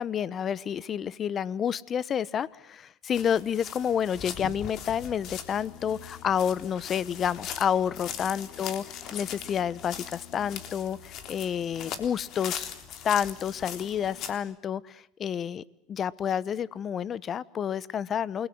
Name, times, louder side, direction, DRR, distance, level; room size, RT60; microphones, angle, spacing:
voice 1, 0.0-12.7 13.0-15.6 15.9-18.5, left 8 dB, 35° left, 21 dB, 1.1 m, -29 dB
sound 1, 3.1-14.4, left 8 dB, 50° left, 3.6 m, -40 dB
28.5 x 22.0 x 7.9 m, 0.69 s
supercardioid pair, 105°, 0 cm